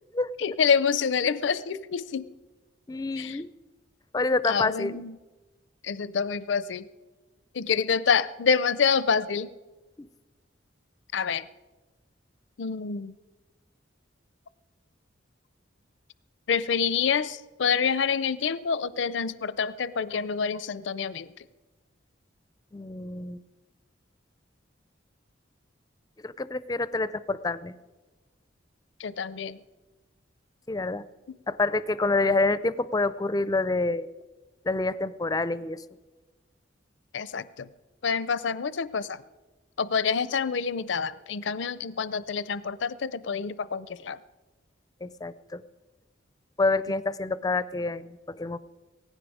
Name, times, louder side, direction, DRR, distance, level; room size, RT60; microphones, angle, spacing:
voice 1, 0.4-2.2 3.2-3.4 4.5-5.1 5.8-6.9 7.5-9.5 11.1-11.5 12.6-13.1 16.5-21.3 29.0-29.6 37.1-37.7 38.0-39.2 39.8-44.2, left 6 dB, 75° left, 17 dB, 0.5 m, -27 dB
voice 2, 2.9-3.5 4.1-5.0 10.0-10.1 22.7-23.4 26.2-27.7 30.7-31.0 31.5-34.1 34.6-35.8 45.0-45.6 46.6-48.6, left 3 dB, 20° left, 16 dB, 0.4 m, -27 dB
18.0 x 15.5 x 4.9 m, 1.2 s
head